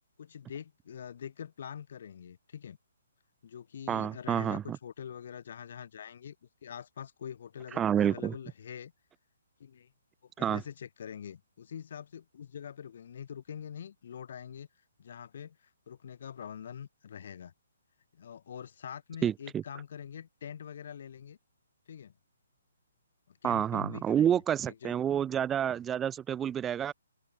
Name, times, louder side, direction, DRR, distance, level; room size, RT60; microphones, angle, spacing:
voice 1, 0.2-2.8 3.4-6.4 6.6-8.9 9.6-9.9 10.4-14.7 15.0-17.5 18.1-21.4 21.9-22.1 23.3-25.0, left 8 dB, 45° left, 4.7 m, -44 dB
voice 2, 3.9-4.8 7.8-8.3 10.4-10.6 19.2-19.6 23.4-26.9, right 9 dB, 10° right, 0.9 m, -29 dB
open air
hypercardioid pair, 175°, 0 cm